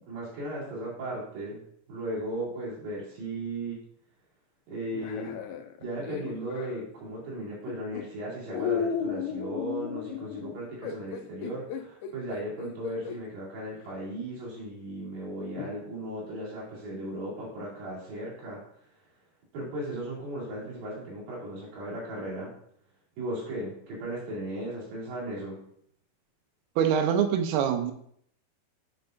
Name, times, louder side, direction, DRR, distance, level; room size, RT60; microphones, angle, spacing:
voice 1, 0.1-1.6 1.9-3.8 4.7-5.4 5.8-18.6 19.5-22.5 23.2-25.6, right 1 dB, 65° right, -6 dB, 4.2 m, -36 dB
sound 1, 4.9-6.9 7.7-8.0 8.5-13.2 13.9-14.0 15.6-15.8, left 8 dB, 80° left, 2.5 m, -35 dB
voice 2, 26.8-27.9, right 8 dB, 80° right, 6 dB, 2.6 m, -24 dB
9.0 x 4.5 x 2.5 m, 0.66 s
omnidirectional pair, 4.6 m